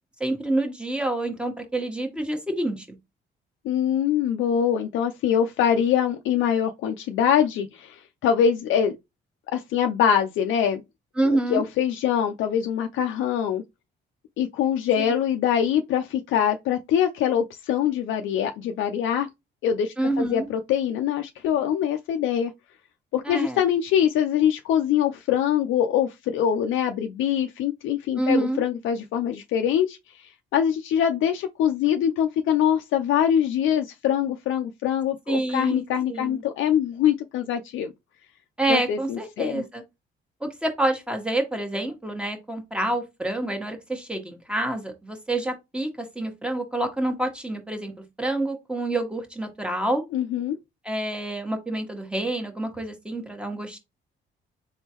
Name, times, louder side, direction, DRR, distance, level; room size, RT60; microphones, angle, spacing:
voice 1, 0.2-3.0 11.2-11.6 15.0-15.1 20.0-20.5 23.2-23.6 28.2-28.6 35.3-36.4 38.6-39.8 40.4-47.9 48.2-50.0 50.8-53.8, right 1 dB, 5° right, 1.1 m, -27 dB
voice 2, 3.6-8.9 9.5-10.8 11.2-13.6 14.4-19.3 19.6-22.5 23.1-37.9 38.7-39.6 50.1-50.6, left 9 dB, 80° left, 0.4 m, -24 dB
3.6 x 3.4 x 2.9 m
cardioid pair, 90°, 20 cm